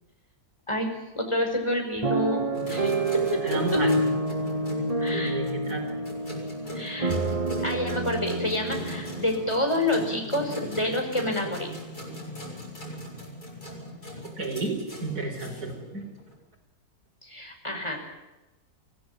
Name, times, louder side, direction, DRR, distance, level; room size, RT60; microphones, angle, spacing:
voice 1, 0.7-2.9 3.3-3.6 5.0-5.4 6.7-7.1 7.6-11.7 17.2-18.1, left 1 dB, 20° left, 2 dB, 5.4 m, -28 dB
sound 1, 2.0-10.1 10.7-10.8 11.1-11.4, right 2 dB, 25° right, 1.3 m, -29 dB
sound 2, 2.5-16.3, left 1 dB, 80° left, 8.8 m, -39 dB
voice 2, 3.4-4.0 5.1-5.9 14.2-16.0, right 2 dB, 80° right, 1 dB, 5.5 m, -32 dB
24.5 x 17.0 x 8.6 m, 1.0 s
omnidirectional pair, 1.6 m